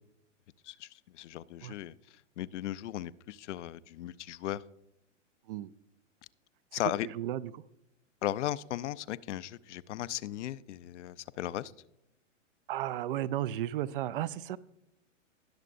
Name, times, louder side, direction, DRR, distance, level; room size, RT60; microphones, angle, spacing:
voice 1, 0.6-2.0 2.4-4.6 6.7-7.1 8.2-11.7, left 13 dB, 65° left, 17 dB, 0.5 m, -36 dB
voice 2, 7.0-7.6 12.7-14.6, right 12 dB, 45° right, 19 dB, 0.4 m, -34 dB
19.5 x 6.6 x 2.5 m, 0.83 s
hypercardioid pair, 120°, 38 cm